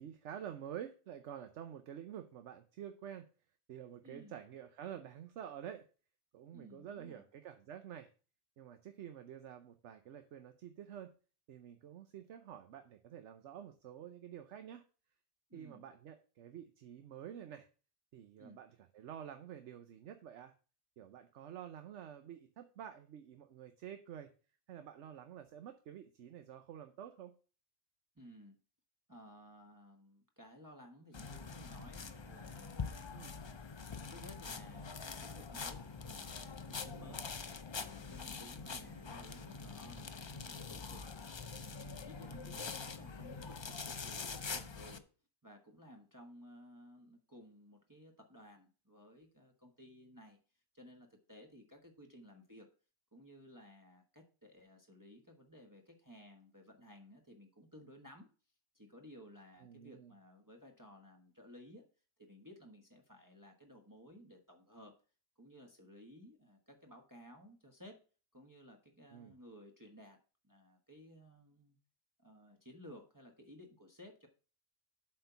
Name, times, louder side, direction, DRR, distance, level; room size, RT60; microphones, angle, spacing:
voice 1, 0.0-3.3 3.7-5.8 6.3-8.1 8.6-11.1 11.5-14.8 15.5-17.7 18.1-20.5 21.0-24.3 24.7-27.3 33.1-33.3 37.0-37.2 38.6-38.9 42.2-42.6 59.6-60.1 69.1-69.3, right 9 dB, 75° right, 8 dB, 1.0 m, -49 dB
voice 2, 6.5-7.2 15.5-15.8 18.4-18.6 28.1-28.6 29.1-33.5 33.9-37.3 37.8-41.1 41.6-45.1 45.4-50.4 50.7-52.7 53.1-58.3 58.7-61.8 62.2-64.9 65.4-68.0 68.3-70.2 70.4-71.8 72.2-74.3, equal, 15° right, 3 dB, 1.2 m, -57 dB
sound 1, 31.1-45.0, left 5 dB, 35° left, 0.4 m, -45 dB
7.8 x 4.4 x 6.8 m, 0.36 s
omnidirectional pair, 1.2 m